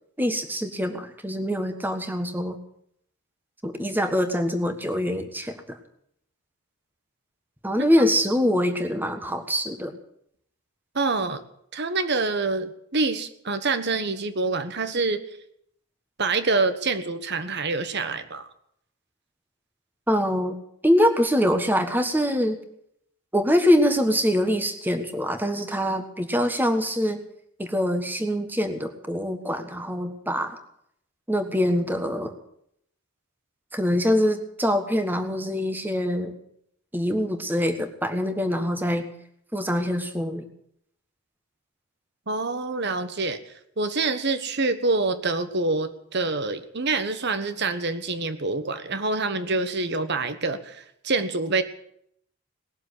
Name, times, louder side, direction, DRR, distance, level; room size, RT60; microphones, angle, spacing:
voice 1, 0.2-2.6 3.6-5.8 7.6-10.0 20.1-20.6 20.8-22.6 23.3-27.2 27.6-30.6 31.3-32.3 33.7-36.3 36.9-39.0 39.5-40.4, equal, 10° right, 7 dB, 1.5 m, -24 dB
voice 2, 10.9-11.4 11.7-15.2 16.2-18.5 42.3-43.4 43.8-51.6, right 3 dB, 50° right, 10 dB, 1.3 m, -26 dB
19.5 x 7.3 x 9.9 m, 0.72 s
head